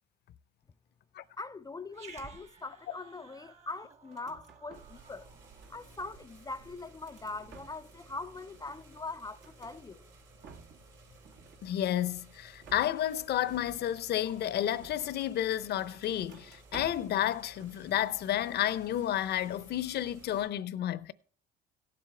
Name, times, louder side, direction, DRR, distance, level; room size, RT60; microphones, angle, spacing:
voice 1, 1.4-5.3 5.7-10.0, left 3 dB, 20° left, 0.4 m, -42 dB
Growling, 1.9-6.5, right 4 dB, 35° right, 1.7 m, -55 dB
sound 1, 4.0-5.0 5.3-6.1 6.6-8.0 8.3-9.8 10.2-10.9 11.2-12.1 12.6-15.4 15.8-17.2 17.5-18.3 18.5-18.8, right 5 dB, 65° right, 1.6 m, -54 dB
sound 2, 4.7-20.5, right 2 dB, 85° right, 5.0 m, -57 dB
voice 2, 11.6-21.1, left 11 dB, 55° left, 0.7 m, -31 dB
17.0 x 7.7 x 3.3 m
supercardioid pair, 85°, 20 cm